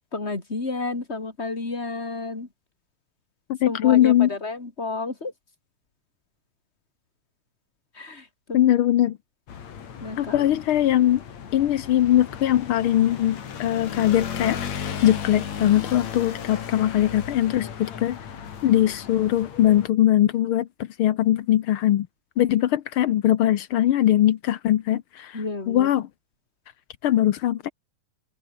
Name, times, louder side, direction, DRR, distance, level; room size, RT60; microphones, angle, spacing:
voice 1, 0.1-2.5 3.7-5.3 7.9-8.7 10.0-10.5 25.3-25.9, left 3 dB, 20° left, 3.4 m, -31 dB
voice 2, 3.5-4.3 8.5-9.2 10.2-11.2 11.5-18.2 18.6-22.1 22.4-26.1 27.0-27.7, left 12 dB, 75° left, 1.2 m, -21 dB
sound 1, 9.5-19.9, left 8 dB, 60° left, 3.5 m, -35 dB
omnidirectional pair, 3.6 m